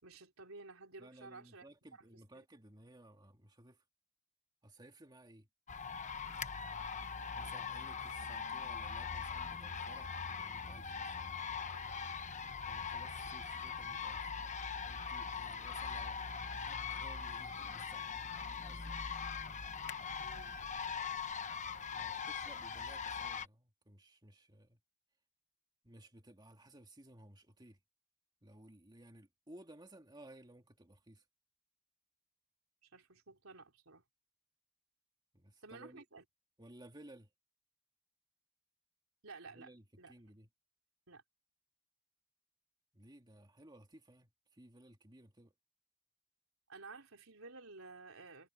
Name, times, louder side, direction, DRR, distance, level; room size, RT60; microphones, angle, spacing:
voice 1, 0.0-1.7 1.9-2.4 20.2-20.6 32.8-34.0 35.6-36.2 39.2-39.7 40.0-40.1 41.1-41.2 46.7-48.5, right 3 dB, 75° right, 3.9 m, -53 dB
voice 2, 1.0-3.8 4.6-5.5 7.3-11.2 12.6-14.3 14.8-18.1 18.5-19.0 21.5-24.8 25.8-27.8 28.4-31.2 35.3-36.0 36.6-37.3 39.5-40.5 42.9-45.5, right 1 dB, 20° right, 2.3 m, -58 dB
sound 1, 5.7-23.5, left 6 dB, 35° left, 1.0 m, -41 dB
head